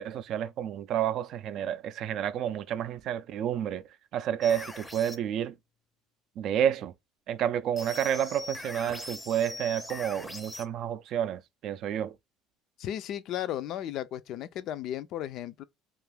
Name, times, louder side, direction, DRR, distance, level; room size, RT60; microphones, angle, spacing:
voice 1, 0.0-3.8 4.1-5.6 6.4-6.9 7.3-12.2, right 9 dB, 60° right, 0.3 m, -30 dB
sound 1, 4.4-5.2 7.8-10.7, left 2 dB, 10° left, 0.5 m, -41 dB
voice 2, 12.8-15.6, left 11 dB, 60° left, 0.3 m, -35 dB
2.5 x 2.4 x 3.2 m
supercardioid pair, 95°, 0 cm